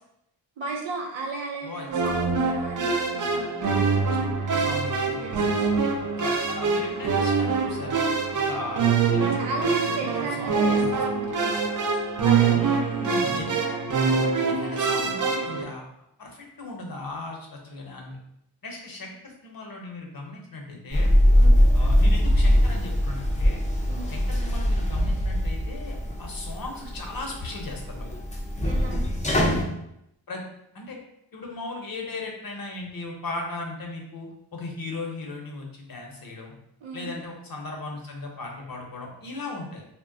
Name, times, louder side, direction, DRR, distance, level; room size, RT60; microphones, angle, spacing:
voice 1, 0.6-3.6 5.2-5.6 6.8-7.1 9.4-13.0 21.3-21.6 23.9-24.1 28.6-29.0 36.8-37.1, right 3 dB, 90° right, 0 dB, 0.7 m, -35 dB
sound 1, 1.9-15.6, right 5 dB, 45° right, 0.5 m, -24 dB
voice 2, 4.2-5.9 6.2-8.0 8.5-8.9 9.1-9.7 10.0-11.0 12.5-13.8 14.5-15.8 16.2-18.2 18.6-21.1 21.7-23.6 24.1-28.2 30.3-30.4 30.7-31.0 31.3-36.5 36.9-39.8, left 2 dB, 50° left, 0 dB, 0.8 m, -37 dB
sound 2, 20.9-29.6, equal, 15° left, 0.5 m, -22 dB
2.2 x 2.1 x 3.7 m, 0.78 s
cardioid pair, 45°, 44 cm